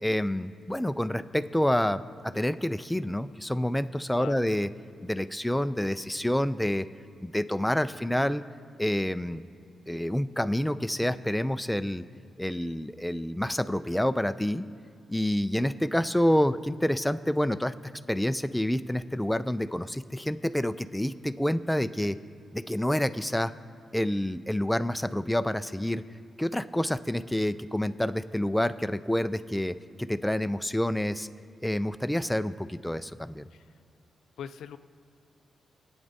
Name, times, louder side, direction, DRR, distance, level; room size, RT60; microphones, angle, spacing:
voice 1, 0.0-4.7 5.0-6.8 7.2-8.4 8.8-9.4 9.9-12.1 12.4-14.6 15.1-17.7 18.1-22.2 22.5-23.5 23.9-26.0 26.4-31.3 31.6-33.5, left 1 dB, 5° left, 10 dB, 0.4 m, -28 dB
voice 2, 4.1-4.5 33.5-33.7 34.4-34.8, left 8 dB, 85° left, 11 dB, 0.4 m, -41 dB
23.5 x 8.8 x 2.7 m, 2.2 s
cardioid pair, 85°, 0 cm